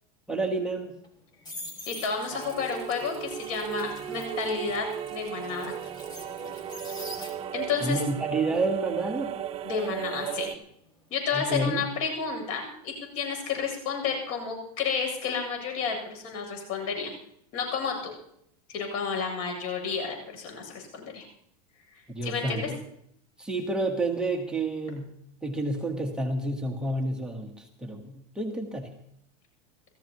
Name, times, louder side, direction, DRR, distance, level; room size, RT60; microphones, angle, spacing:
voice 1, 0.3-0.9 7.8-9.3 11.3-11.8 22.1-22.8 23.4-25.1 25.4-28.9, right 2 dB, 5° right, 1 dB, 1.4 m, -29 dB
sound 1, 1.0-7.8 8.1-11.0 11.3-11.6, left 1 dB, 20° left, 2.7 m, -45 dB
voice 2, 1.9-5.8 7.5-8.0 9.6-10.5 11.1-17.1 17.5-18.1 18.7-21.2 22.2-22.7, left 5 dB, 65° left, 3 dB, 8.0 m, -31 dB
sound 2, 2.3-10.5, right 10 dB, 30° right, 0.8 m, -36 dB
27.5 x 15.0 x 3.1 m, 0.71 s
supercardioid pair, 140°, 19 cm